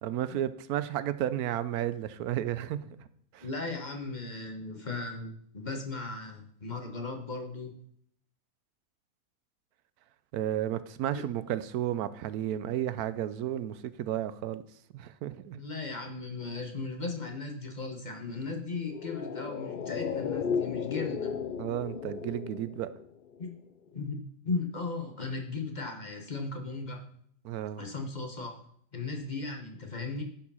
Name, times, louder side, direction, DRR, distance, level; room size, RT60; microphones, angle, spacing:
voice 1, 0.0-3.0 3.3-3.5 10.3-14.6 14.9-15.6 21.6-22.9 27.4-27.8, right 11 dB, 90° right, 14 dB, 1.1 m, -32 dB
voice 2, 3.4-7.7 11.1-11.2 15.5-21.3 23.4-23.5 23.9-27.0 27.8-28.6 28.9-30.2, left 3 dB, 35° left, 4 dB, 1.1 m, -37 dB
sound 1, 18.8-23.4 23.7-23.8, left 7 dB, 55° left, 0.5 m, -34 dB
11.0 x 4.8 x 5.5 m, 0.66 s
omnidirectional pair, 1.5 m